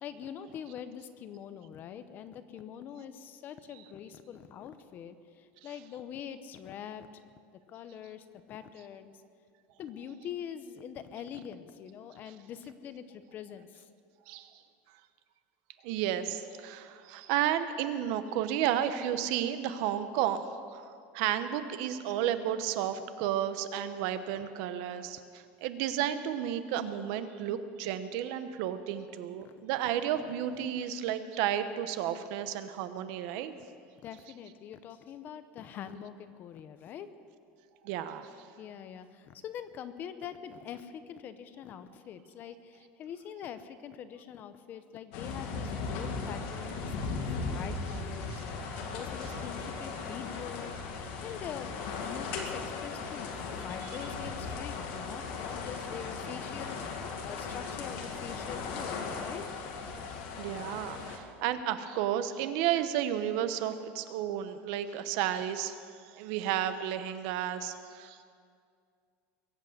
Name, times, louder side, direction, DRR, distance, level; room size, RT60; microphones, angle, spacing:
voice 1, 0.0-7.1 7.7-9.1 9.8-13.9 29.4-29.6 30.5-30.6 34.0-37.1 38.6-48.5 48.9-50.7 51.2-53.3 53.6-59.5, left 8 dB, 30° left, 11 dB, 0.7 m, -44 dB
voice 2, 15.8-33.5 37.8-38.3 48.3-48.4 60.4-65.7 66.1-68.2, right 10 dB, 55° right, 11 dB, 0.9 m, -32 dB
sound 1, 45.1-61.2, left 4 dB, 65° left, 2.1 m, -37 dB
21.5 x 8.3 x 8.0 m, 2.3 s
cardioid pair, 170°, 6 cm